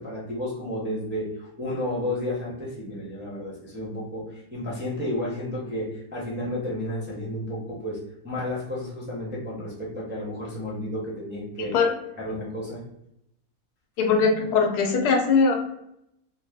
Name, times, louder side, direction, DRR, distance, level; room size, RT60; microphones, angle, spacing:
voice 1, 0.0-8.0 8.2-11.7 12.2-12.8, left 1 dB, 15° right, -6 dB, 0.4 m, -32 dB
voice 2, 11.6-11.9 14.0-15.5, left 5 dB, 80° left, 4 dB, 1.2 m, -21 dB
2.7 x 2.3 x 3.4 m, 0.79 s
omnidirectional pair, 1.7 m